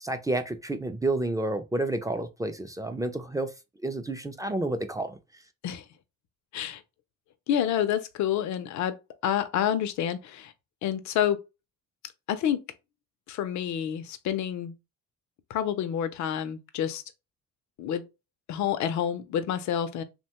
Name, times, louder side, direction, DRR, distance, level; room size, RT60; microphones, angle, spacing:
voice 1, 0.0-3.5 3.8-5.2, right 2 dB, 10° right, 0.3 m, -30 dB
voice 2, 7.5-8.9 9.2-10.5 10.8-11.4 12.3-12.6 13.3-14.7 15.5-17.0 17.8-18.0 18.5-20.0, left 10 dB, 70° left, 0.5 m, -28 dB
3.0 x 2.2 x 2.8 m
cardioid pair, 90°, 30 cm